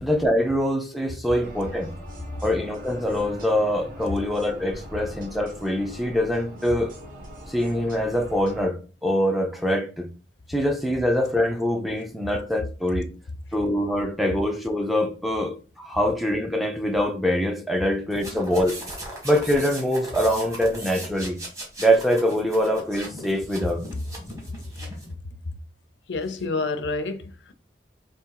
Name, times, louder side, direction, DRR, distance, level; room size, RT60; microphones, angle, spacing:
voice 1, 0.0-1.9 2.4-6.9 7.5-10.1 10.5-13.1 13.5-18.8 19.2-21.4 21.8-23.8, equal, ahead, 0.5 m, -24 dB
sound 1, 1.4-8.7, equal, 50° right, 1.3 m, -41 dB
sound 2, 18.1-25.1, right 1 dB, 20° right, 1.7 m, -38 dB
voice 2, 26.1-27.5, left 3 dB, 80° left, 0.6 m, -28 dB
3.5 x 2.9 x 4.6 m
head